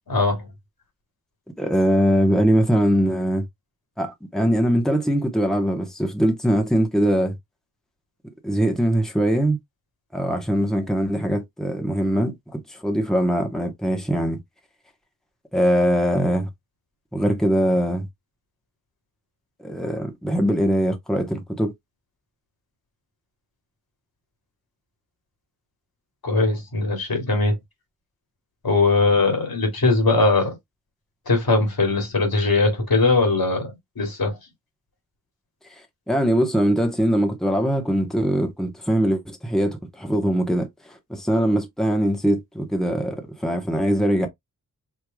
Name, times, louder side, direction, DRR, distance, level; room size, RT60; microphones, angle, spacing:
voice 1, 0.1-0.5 26.2-27.6 28.6-30.6 31.3-34.4, left 3 dB, 75° left, 2.4 m, -20 dB
voice 2, 1.6-3.4 4.0-7.3 8.4-9.6 10.1-14.4 15.5-16.5 17.1-18.1 19.6-21.7 36.1-44.3, equal, ahead, 1.2 m, -22 dB
4.7 x 3.3 x 2.3 m
cardioid pair, 55°, 37 cm